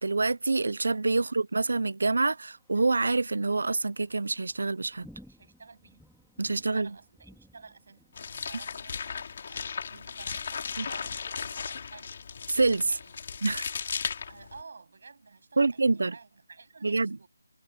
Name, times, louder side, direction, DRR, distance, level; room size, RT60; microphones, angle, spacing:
voice 1, 0.0-5.1 6.4-6.9 10.8-10.9 12.5-13.0 13.4-13.7 15.6-16.1 16.8-17.2, right 3 dB, 70° right, 0.5 m, -26 dB
Thunder, 2.5-13.4, equal, ahead, 2.9 m, -59 dB
voice 2, 5.2-6.1 6.5-12.1 12.8-13.5 13.9-17.3, right 4 dB, 50° right, 7.5 m, -52 dB
sound 1, 8.2-14.6, left 6 dB, 40° left, 3.6 m, -36 dB
figure-of-eight pair, 170°, 0 cm